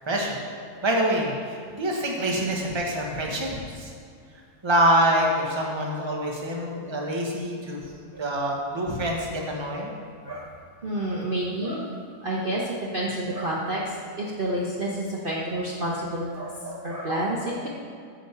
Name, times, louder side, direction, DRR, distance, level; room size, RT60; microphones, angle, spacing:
voice 1, 0.1-0.4 0.8-1.3 1.7-3.5 3.8-3.9 4.6-7.8 8.1-9.9, right 1 dB, 20° right, -1 dB, 1.2 m, -25 dB
voice 2, 10.8-11.9 12.2-17.7, right 1 dB, 40° right, -5 dB, 1.1 m, -29 dB
9.2 x 5.0 x 7.1 m, 2.3 s
omnidirectional pair, 1.6 m